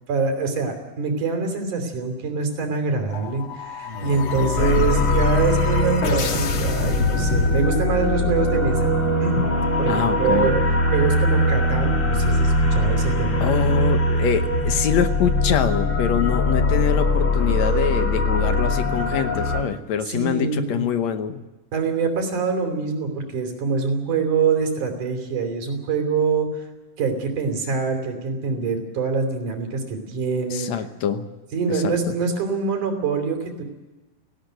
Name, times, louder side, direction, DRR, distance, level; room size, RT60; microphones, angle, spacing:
voice 1, 0.1-8.9 9.2-9.5 9.8-10.5 10.9-13.4 20.1-20.8 21.7-26.7 27.0-30.7 31.5-33.6, right 5 dB, 85° right, 5 dB, 4.6 m, -24 dB
sound 1, 3.1-8.1, left 4 dB, 50° left, 2.2 m, -26 dB
voice 2, 4.4-4.9 9.9-10.6 13.4-21.4 30.5-31.3 31.7-32.1, left 8 dB, 70° left, 9 dB, 2.2 m, -25 dB
sound 2, 4.6-19.6, left 1 dB, 30° left, 1.7 m, -21 dB
18.0 x 16.5 x 9.2 m, 1.1 s
omnidirectional pair, 3.4 m